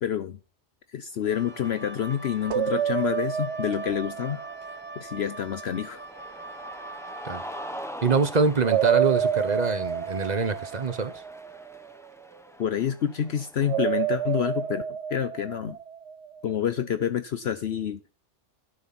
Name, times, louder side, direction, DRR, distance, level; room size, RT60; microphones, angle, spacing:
voice 1, 0.0-0.4 0.9-4.4 4.7-6.0 12.6-14.8 15.1-15.8 16.4-18.0, left 9 dB, 65° left, 1.0 m, -28 dB
Cheering, 1.2-14.7, equal, 5° left, 1.0 m, -45 dB
Wind instrument woodwind instrument, 1.2-7.9, right 3 dB, 15° right, 0.6 m, -42 dB
sound 1, 2.5-5.5 8.6-11.9 13.6-16.4, right 9 dB, 70° right, 1.0 m, -29 dB
voice 2, 8.0-11.1, right 4 dB, 35° right, 1.3 m, -25 dB
12.0 x 9.5 x 4.3 m
omnidirectional pair, 1.2 m